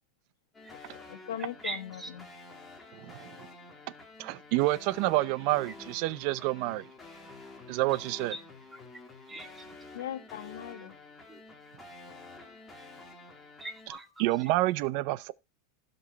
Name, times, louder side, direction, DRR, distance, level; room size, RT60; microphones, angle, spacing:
sound 1, 0.5-13.9, left 3 dB, 10° left, 2.3 m, -49 dB
voice 1, 0.7-2.3 9.9-10.9, left 11 dB, 90° left, 1.4 m, -40 dB
voice 2, 1.6-2.1 8.3-8.4 8.7-9.0 9.3-9.6 11.3-11.4 13.6-14.5, right 2 dB, 10° right, 1.3 m, -41 dB
voice 3, 2.9-3.5 4.2-6.9 7.7-8.4 14.2-15.3, right 18 dB, 50° right, 0.6 m, -28 dB
16.0 x 5.4 x 4.0 m
supercardioid pair, 150°, 0 cm